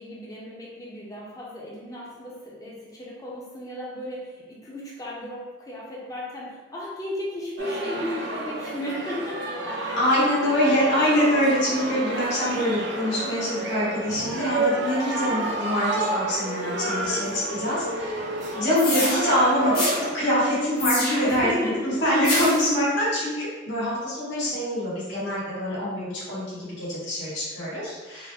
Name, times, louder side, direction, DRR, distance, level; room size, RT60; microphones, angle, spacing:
voice 1, 0.0-10.3 15.2-15.6 21.2-21.9, left 1 dB, 15° left, -4 dB, 0.6 m, -34 dB
sound 1, 7.6-20.1, right 2 dB, 60° right, 0.4 m, -30 dB
voice 2, 10.0-18.1 18.6-28.3, equal, 65° left, -9 dB, 1.3 m, -24 dB
sound 2, 18.8-19.2 19.7-20.0 20.8-21.4 22.2-22.7, left 2 dB, 45° left, 0.9 m, -26 dB
3.6 x 2.1 x 3.0 m, 1.3 s
head